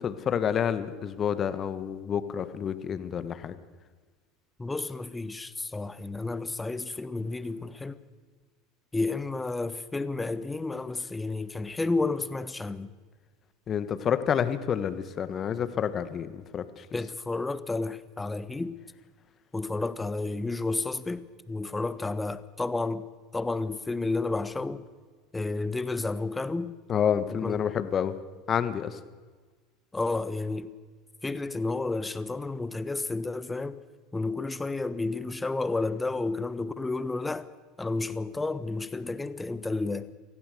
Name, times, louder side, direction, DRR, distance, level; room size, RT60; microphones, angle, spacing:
voice 1, 0.0-3.5 13.7-16.8 26.9-28.1 28.5-29.0, left 8 dB, 35° left, 1.6 m, -29 dB
voice 2, 4.6-8.0 8.9-12.9 16.9-18.8 19.5-23.0 23.3-24.8 25.3-26.7 27.3-27.7 29.9-30.7 31.2-33.8 34.1-37.5 37.8-40.1, left 3 dB, 10° left, 1.2 m, -31 dB
26.0 x 16.0 x 6.9 m
figure-of-eight pair, 80°, 0 cm